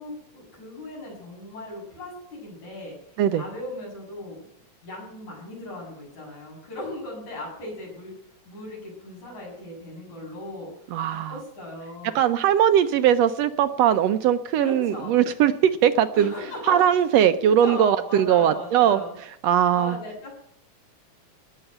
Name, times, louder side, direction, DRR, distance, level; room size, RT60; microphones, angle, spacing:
voice 1, 0.0-2.9 3.3-4.4 4.8-8.1 8.5-10.7 11.1-12.2 14.6-15.1 16.1-16.8 17.6-19.1 19.7-20.4, left 2 dB, 75° left, -2 dB, 8.5 m, -37 dB
voice 2, 10.9-11.4 12.1-16.3 16.7-19.0 19.4-20.0, right 10 dB, 75° right, 10 dB, 1.7 m, -20 dB
18.5 x 7.1 x 8.9 m, 0.70 s
omnidirectional pair, 3.3 m